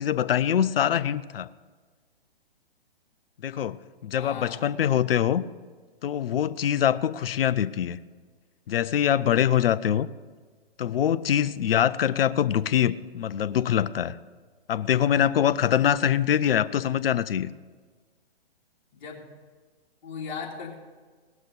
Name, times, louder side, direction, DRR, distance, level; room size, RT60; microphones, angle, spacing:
voice 1, 0.0-1.5 3.4-3.8 4.0-5.4 6.0-8.0 8.7-10.1 10.8-14.1 14.7-17.5, left 10 dB, 65° left, 14 dB, 0.6 m, -24 dB
voice 2, 4.1-4.6 18.9-19.3 20.0-20.8, left 5 dB, 45° left, -2 dB, 2.7 m, -37 dB
18.0 x 6.3 x 5.3 m, 1.5 s
hypercardioid pair, 135°, 31 cm